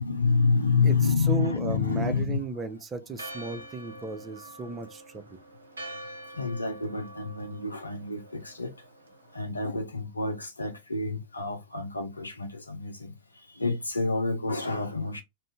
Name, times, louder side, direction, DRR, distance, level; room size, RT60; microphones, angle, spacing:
voice 1, 0.0-2.7 4.7-4.8 6.4-8.7 9.3-13.1 13.5-15.2, left 4 dB, 80° left, 0.6 m, -28 dB
voice 2, 1.3-5.4, right 4 dB, 20° right, 0.6 m, -35 dB
Church bell, 3.1-9.4, right 1 dB, 75° right, 0.6 m, -45 dB
2.7 x 2.5 x 3.4 m
figure-of-eight pair, 90°, 0 cm